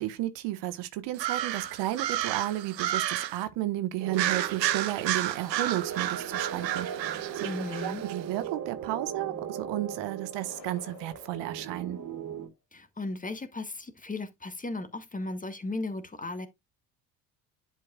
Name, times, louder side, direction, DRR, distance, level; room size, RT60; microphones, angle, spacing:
voice 1, 0.0-7.1 7.3-7.5 7.8-12.0, right 14 dB, 60° right, 1.3 m, -33 dB
sound 1, 1.1-3.4 4.1-8.2, right 12 dB, 85° right, 0.7 m, -31 dB
sound 2, 4.0-12.5, right 8 dB, 40° right, 2.1 m, -39 dB
sound 3, 6.2-8.2 10.3-12.4, left 3 dB, 85° left, 2.1 m, -51 dB
voice 2, 7.4-8.0 12.7-16.5, left 2 dB, 15° left, 1.5 m, -36 dB
11.0 x 5.4 x 2.4 m
hypercardioid pair, 65°, 49 cm